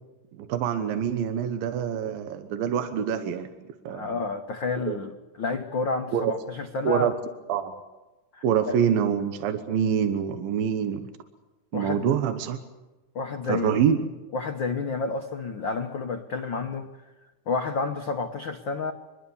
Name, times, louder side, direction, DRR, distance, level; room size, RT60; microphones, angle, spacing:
voice 1, 0.4-4.1 4.9-5.0 6.1-6.3 6.8-7.1 7.5-7.7 8.4-11.1 11.7-12.6 13.5-14.0, right 8 dB, 85° right, 8 dB, 3.0 m, -26 dB
voice 2, 3.9-7.1 8.3-8.7 11.7-12.1 13.1-14.0 14.3-16.9 17.5-18.9, left 4 dB, 75° left, 5 dB, 1.0 m, -30 dB
25.0 x 22.5 x 7.1 m, 1.1 s
omnidirectional pair, 4.0 m